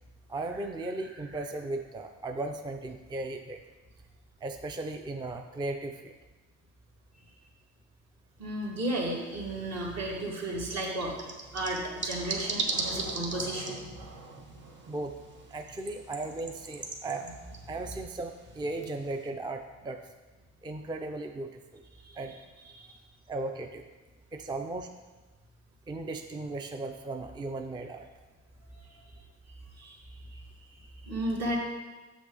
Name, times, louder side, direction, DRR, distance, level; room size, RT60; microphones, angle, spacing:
voice 1, 0.3-3.6 4.4-6.2 14.9-15.1 15.5-17.3 17.7-20.0 20.6-21.8 22.2-22.4 23.3-23.9 24.3-24.9 25.9-28.1, right 2 dB, 15° right, 6 dB, 0.4 m, -36 dB
voice 2, 8.4-11.1 11.5-13.9 22.0-22.2 22.7-22.9 28.7-28.9 29.7-30.0 30.3-30.4 30.7-31.6, right 1 dB, 60° right, -3 dB, 2.1 m, -34 dB
sound 1, 8.9-19.3, right 3 dB, 40° right, 1.2 m, -40 dB
sound 2, 11.2-20.0, right 3 dB, 85° right, 1.0 m, -51 dB
7.4 x 6.0 x 3.9 m, 1.2 s
cardioid pair, 90°, 30 cm